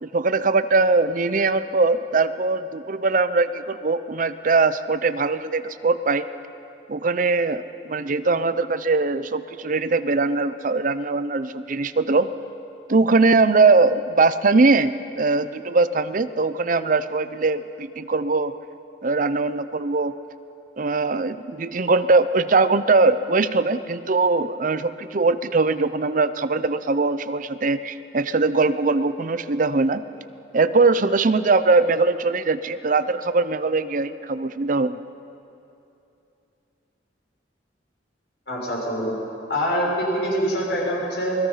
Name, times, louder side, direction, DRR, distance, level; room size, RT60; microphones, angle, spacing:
voice 1, 0.0-6.2 6.9-12.3 12.9-18.5 19.0-20.1 20.8-30.0 30.5-35.0, right 3 dB, 45° right, 12 dB, 0.6 m, -21 dB
voice 2, 38.5-39.1 39.5-41.4, equal, 70° left, -3 dB, 6.7 m, -24 dB
28.0 x 20.5 x 5.7 m, 2.7 s
head